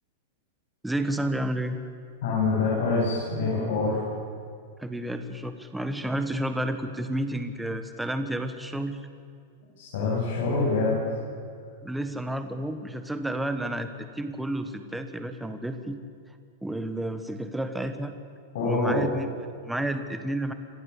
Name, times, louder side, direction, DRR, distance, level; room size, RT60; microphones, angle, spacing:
voice 1, 0.8-1.8 4.8-9.0 11.8-16.0 16.6-18.1 18.6-20.5, right 1 dB, 5° right, 8 dB, 1.3 m, -31 dB
voice 2, 2.2-4.0 9.8-11.0 18.5-19.0, left 3 dB, 65° left, -6 dB, 7.9 m, -25 dB
26.0 x 14.5 x 8.4 m, 2.2 s
supercardioid pair, 160°, 0 cm